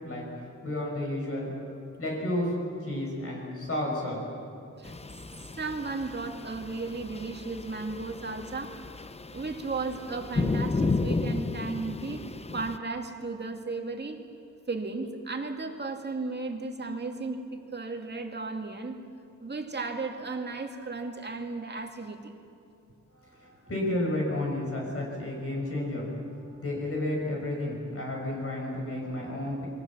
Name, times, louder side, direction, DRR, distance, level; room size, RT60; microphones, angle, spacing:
voice 1, 0.0-4.2 23.1-26.1 26.6-29.7, left 1 dB, 45° left, -2 dB, 6.0 m, -32 dB
sound 1, 4.8-12.8, left 3 dB, 20° left, 0.6 m, -33 dB
voice 2, 5.4-8.7 9.3-12.2 12.5-14.2 14.7-19.0 19.4-22.3, right 3 dB, 35° right, 4 dB, 2.3 m, -35 dB
28.5 x 23.0 x 7.4 m, 2.7 s
wide cardioid pair, 170°, 32 cm